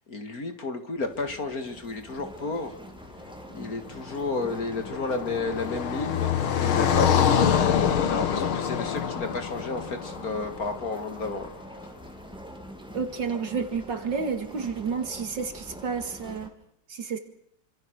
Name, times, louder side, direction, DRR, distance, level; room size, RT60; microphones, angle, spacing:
voice 1, 0.1-2.8 3.5-7.8 8.1-11.5, left 3 dB, 45° left, 7 dB, 2.4 m, -32 dB
sound 1, 1.0-16.5, equal, ahead, 2.7 m, -44 dB
Car passing by, 4.0-11.2, left 8 dB, 85° left, 2.3 m, -26 dB
voice 2, 12.9-16.5 16.9-17.2, right 5 dB, 60° right, 8 dB, 2.7 m, -30 dB
27.0 x 26.0 x 6.4 m, 0.72 s
omnidirectional pair, 2.2 m